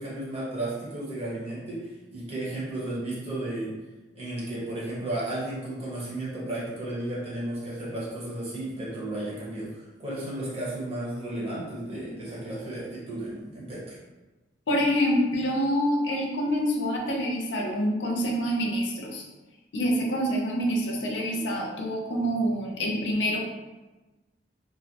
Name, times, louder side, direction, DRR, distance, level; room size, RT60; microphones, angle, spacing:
voice 1, 0.0-3.7 4.1-14.0, right 1 dB, 35° right, -7 dB, 0.8 m, -33 dB
voice 2, 14.7-19.2 19.7-23.4, equal, 75° left, 0 dB, 0.5 m, -26 dB
2.5 x 2.0 x 2.7 m, 1.1 s
head